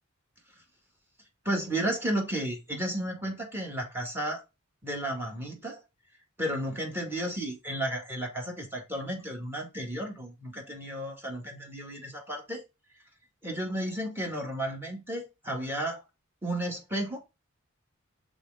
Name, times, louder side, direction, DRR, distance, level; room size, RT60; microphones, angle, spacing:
voice 1, 1.5-4.4 4.8-5.8 6.4-12.6 13.4-16.0 16.4-17.2, right 1 dB, 10° right, 2.0 m, -33 dB
6.6 x 3.8 x 3.7 m
head